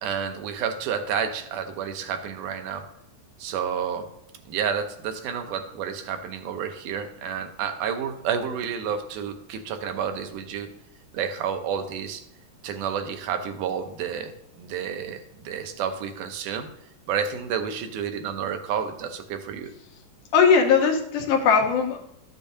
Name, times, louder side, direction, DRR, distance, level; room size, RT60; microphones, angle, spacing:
voice 1, 0.0-2.9 3.4-4.1 4.5-10.7 11.1-12.2 12.6-14.3 14.6-16.7 17.1-19.7, right 7 dB, 80° right, 7 dB, 2.3 m, -30 dB
voice 2, 20.3-22.0, left 6 dB, 80° left, 2 dB, 2.6 m, -19 dB
13.5 x 6.8 x 2.7 m, 0.78 s
omnidirectional pair, 3.6 m